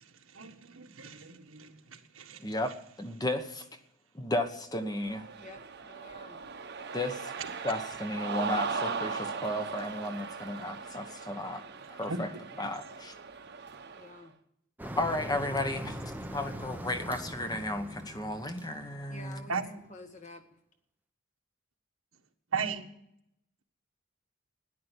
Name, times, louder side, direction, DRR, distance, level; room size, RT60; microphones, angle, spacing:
voice 1, 0.3-2.4 12.0-12.2 19.5-19.7 22.5-22.8, right 5 dB, 85° right, 1.6 m, -36 dB
voice 2, 3.0-3.7 4.1-5.3 6.9-7.3 7.6-11.6 11.9-12.3 12.6-13.2 15.0-19.5, left 1 dB, 20° left, 1.1 m, -34 dB
Cheering, 4.9-14.2, right 5 dB, 55° right, 1.1 m, -38 dB
voice 3, 5.4-6.4 14.0-14.3 19.1-20.5, left 1 dB, 35° left, 1.6 m, -49 dB
Motor vehicle (road), 14.8-19.7, equal, 10° right, 0.8 m, -42 dB
13.5 x 10.5 x 8.3 m
head